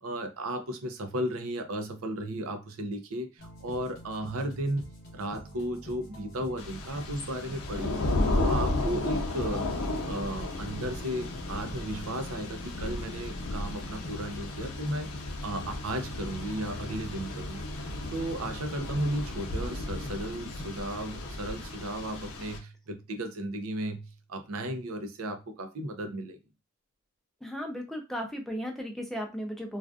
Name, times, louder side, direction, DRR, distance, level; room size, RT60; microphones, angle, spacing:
voice 1, 0.0-4.8 5.1-8.0 8.4-9.7 10.1-15.1 15.4-17.7 18.1-26.4, right 1 dB, 70° right, 6 dB, 0.5 m, -34 dB
sound 1, 3.4-20.8, left 1 dB, 50° left, 0.8 m, -45 dB
Thunder / Rain, 6.6-22.6, left 2 dB, 80° left, 0.6 m, -34 dB
voice 2, 27.4-29.8, equal, ahead, 2 dB, 0.5 m, -35 dB
2.4 x 2.4 x 2.3 m, 0.26 s
head